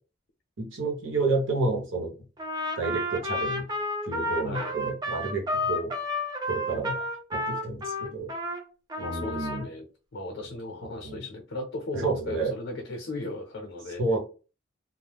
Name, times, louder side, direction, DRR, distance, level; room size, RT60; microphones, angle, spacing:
voice 1, 0.6-2.1 2.8-3.6 4.1-5.9 6.5-7.0 7.3-8.3 9.0-9.6 10.9-11.2 11.9-12.5 14.0-14.2, right 3 dB, 90° right, 0 dB, 1.0 m, -30 dB
Trumpet, 2.4-8.6 8.9-9.7, left 1 dB, 20° right, 0.5 m, -31 dB
voice 2, 9.0-9.9 10.1-14.0, left 2 dB, 75° left, 3 dB, 0.6 m, -36 dB
2.4 x 2.1 x 3.3 m, 0.35 s
head